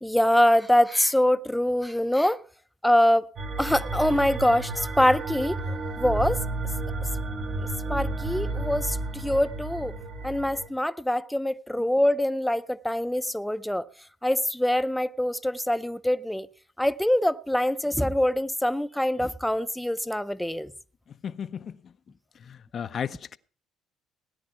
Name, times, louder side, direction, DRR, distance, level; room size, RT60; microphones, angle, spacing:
voice 1, 0.0-2.4 2.8-3.3 3.6-6.4 7.6-9.9 10.2-13.9 14.2-16.5 16.8-20.7, left 1 dB, 5° left, 0.5 m, -24 dB
sound 1, 3.4-10.7, right 2 dB, 50° right, 1.1 m, -32 dB
voice 2, 21.1-21.9 22.4-23.4, left 7 dB, 50° left, 0.5 m, -35 dB
17.5 x 9.8 x 4.4 m
supercardioid pair, 80°, 0 cm